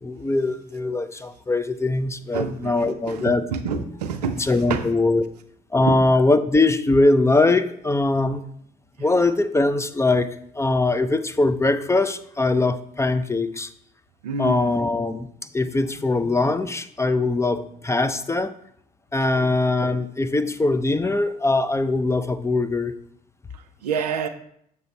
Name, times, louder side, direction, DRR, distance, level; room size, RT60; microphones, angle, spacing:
voice 1, 0.0-3.4 4.4-5.2 5.7-8.4 9.0-10.3 10.5-13.7 14.4-15.3 15.5-18.5 19.1-22.9, left 2 dB, 15° left, 11 dB, 0.5 m, -21 dB
voice 2, 2.3-4.8 5.9-6.0 14.2-14.7 19.3-19.6 23.5-24.3, right 5 dB, 85° right, 8 dB, 0.5 m, -28 dB
6.7 x 3.3 x 5.4 m, 0.68 s
hypercardioid pair, 50°, 20 cm